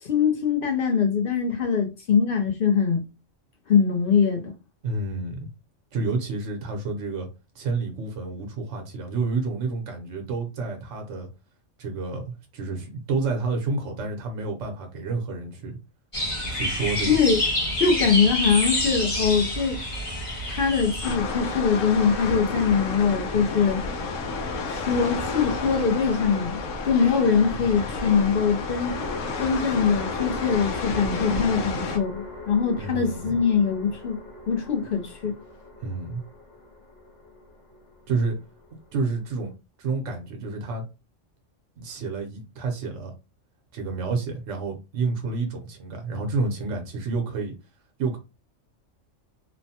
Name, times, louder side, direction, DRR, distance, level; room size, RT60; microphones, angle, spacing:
voice 1, 0.0-3.0 3.7-4.5 17.1-17.4 17.8-19.8 20.5-23.8 24.7-26.6 26.8-29.0 29.4-34.2 34.5-35.4, left 6 dB, 55° left, 0.8 m, -22 dB
voice 2, 4.8-5.5 5.9-7.3 7.5-11.3 11.8-15.7 16.5-17.2 32.8-33.4 35.8-36.2 38.1-38.4 38.9-39.5 39.8-40.8 41.8-43.1 43.7-47.5 48.0-48.2, right 3 dB, 75° right, 1.1 m, -29 dB
sound 1, 16.1-21.1, left 1 dB, 25° left, 1.0 m, -27 dB
sound 2, 21.0-32.0, left 3 dB, 85° left, 1.1 m, -31 dB
sound 3, 25.0-25.9 28.2-39.5, left 2 dB, 70° left, 1.3 m, -42 dB
3.1 x 2.1 x 2.8 m
omnidirectional pair, 1.3 m